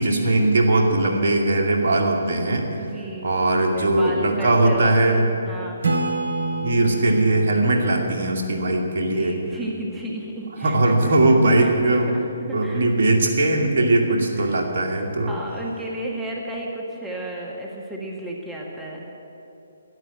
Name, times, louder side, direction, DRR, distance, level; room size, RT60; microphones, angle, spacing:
voice 1, 0.0-2.7 3.2-5.3 6.6-9.4 10.6-12.2 12.5-15.4, right 2 dB, 50° right, 0 dB, 2.4 m, -20 dB
voice 2, 2.8-5.8 9.1-11.1 11.6-12.9 13.8-15.0 15.3-19.1, right 1 dB, 5° right, -2 dB, 1.5 m, -34 dB
Acoustic guitar / Strum, 5.8-9.4, right 2 dB, 70° right, 1.1 m, -29 dB
12.5 x 11.0 x 8.8 m, 2.9 s
figure-of-eight pair, 140°, 0 cm